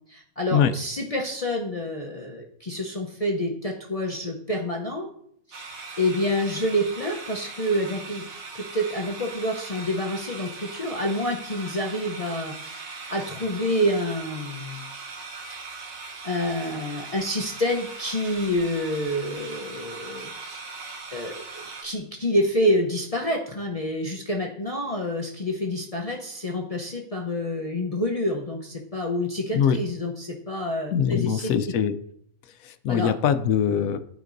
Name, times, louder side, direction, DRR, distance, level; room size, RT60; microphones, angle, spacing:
voice 1, 0.1-5.1 5.5-5.7 6.0-8.3 8.5-14.9 16.2-20.6 21.1-31.8 32.9-33.1, left 1 dB, 35° left, 0 dB, 0.7 m, -28 dB
sound 1, 5.5-21.8, right 4 dB, 75° right, 1.5 m, -40 dB
voice 2, 30.9-31.9 32.6-34.0, left 8 dB, 80° left, 12 dB, 1.0 m, -22 dB
12.5 x 5.1 x 2.6 m, 0.68 s
omnidirectional pair, 1.4 m